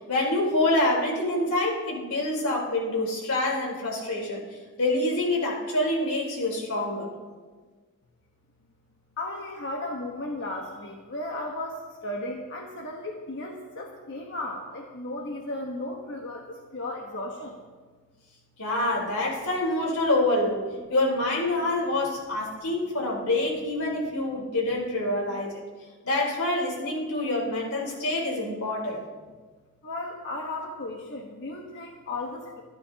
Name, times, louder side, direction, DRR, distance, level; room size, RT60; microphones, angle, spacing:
voice 1, 0.1-4.4 4.8-7.1 18.6-20.6 20.9-25.6 26.0-29.0, left 2 dB, 85° left, -2 dB, 3.9 m, -26 dB
voice 2, 9.2-17.6 29.8-32.6, left 2 dB, 55° left, 0 dB, 1.3 m, -35 dB
25.0 x 12.0 x 2.9 m, 1.4 s
head